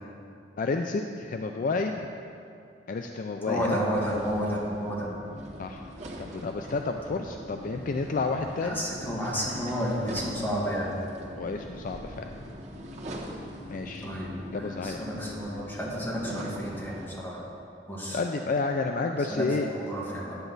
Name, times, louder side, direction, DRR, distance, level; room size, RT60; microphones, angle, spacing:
voice 1, 0.6-2.1 2.9-3.8 5.6-5.8 6.2-8.8 11.4-12.3 13.7-14.1 14.5-15.0 18.1-19.7, left 3 dB, 50° left, 4 dB, 0.4 m, -30 dB
voice 2, 3.4-5.1 8.6-10.9 14.0-17.4 17.9-18.2 19.3-20.4, equal, 10° left, -6 dB, 1.9 m, -31 dB
sound 1, 3.9-17.1, equal, 40° right, 1.3 m, -42 dB
10.0 x 8.2 x 4.0 m, 2.5 s
head